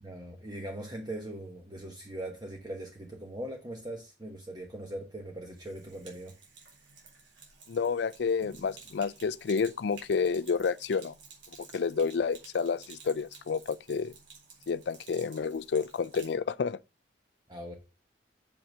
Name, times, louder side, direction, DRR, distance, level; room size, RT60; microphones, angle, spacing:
voice 1, 0.0-6.3 17.5-17.7, right 1 dB, 20° right, 1.1 m, -40 dB
Sink (filling or washing), 5.5-16.4, right 4 dB, 75° right, 3.7 m, -53 dB
voice 2, 7.7-11.1 11.7-14.1 14.7-16.8, left 5 dB, 65° left, 0.4 m, -30 dB
7.1 x 5.7 x 5.4 m
head